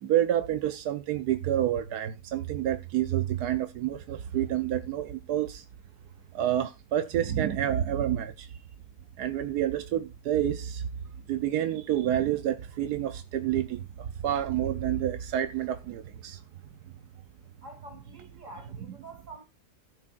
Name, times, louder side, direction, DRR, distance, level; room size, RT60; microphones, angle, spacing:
voice 1, 0.0-5.6 6.3-8.6 9.2-10.8 11.3-16.4, right 11 dB, 90° right, 1.3 m, -28 dB
voice 2, 17.6-19.4, right 2 dB, 50° right, 3.2 m, -47 dB
16.5 x 7.3 x 2.5 m
omnidirectional pair, 1.6 m